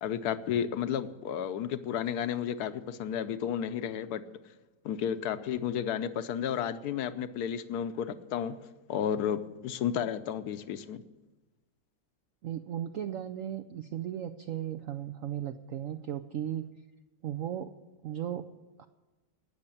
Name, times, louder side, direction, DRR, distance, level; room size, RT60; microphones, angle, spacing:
voice 1, 0.0-4.2 4.8-8.6 8.9-11.0, left 9 dB, 65° left, 11 dB, 1.2 m, -32 dB
voice 2, 12.4-16.7 17.2-17.7 18.0-18.5 18.8-18.9, right 10 dB, 75° right, 9 dB, 0.7 m, -36 dB
18.0 x 6.7 x 8.5 m, 1.1 s
omnidirectional pair, 2.0 m